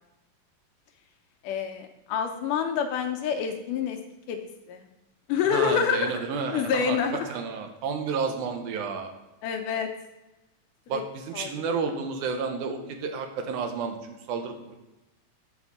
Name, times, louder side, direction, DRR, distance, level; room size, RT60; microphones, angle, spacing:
voice 1, 1.4-4.0 4.3-4.4 4.7-4.9 5.3-6.1 6.5-7.3 9.4-9.9 10.9-11.0 11.3-11.5, left 7 dB, 80° left, 6 dB, 2.0 m, -27 dB
voice 2, 5.4-9.1 10.9-14.7, right 5 dB, 75° right, 5 dB, 2.0 m, -31 dB
7.1 x 4.3 x 6.7 m, 1.0 s
omnidirectional pair, 3.9 m